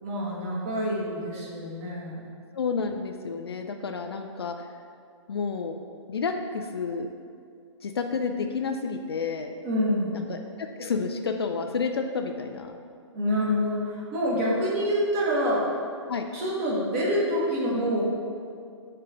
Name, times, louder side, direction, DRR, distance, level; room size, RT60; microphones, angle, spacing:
voice 1, 0.0-2.3 9.6-10.2 13.1-15.6 16.3-18.1, equal, 30° right, -4 dB, 1.3 m, -26 dB
voice 2, 2.5-4.7 5.3-5.7 6.1-7.1 7.8-9.5 10.1-12.8 16.1-16.2, left 5 dB, 55° left, 5 dB, 0.4 m, -30 dB
5.9 x 3.2 x 4.9 m, 2.3 s
figure-of-eight pair, 125°, 16 cm